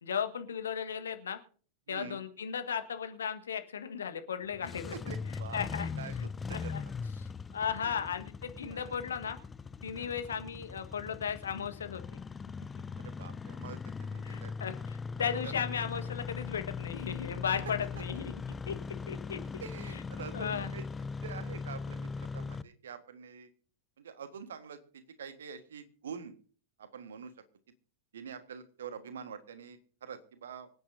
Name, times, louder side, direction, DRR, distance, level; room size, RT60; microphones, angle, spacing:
voice 1, 0.0-1.4 1.9-5.1 5.5-5.9 6.2-6.8 7.2-9.4 9.8-12.2 14.2-18.3 18.7-18.8 19.1-19.4 19.9-20.0 20.3-20.7, left 7 dB, 65° left, 8 dB, 1.5 m, -36 dB
voice 2, 1.9-2.2 4.6-5.7 6.0-6.1 6.5-6.7 7.8-8.0 8.6-9.0 9.9-10.2 13.0-14.5 15.4-15.8 19.6-20.9 21.2-23.5 24.0-26.3 26.8-27.3 28.1-30.7, right 6 dB, 65° right, 10 dB, 1.5 m, -46 dB
Engine starting, 4.5-22.6, left 5 dB, 15° left, 0.4 m, -40 dB
25.0 x 9.3 x 2.7 m, 0.43 s
figure-of-eight pair, 90°, 0 cm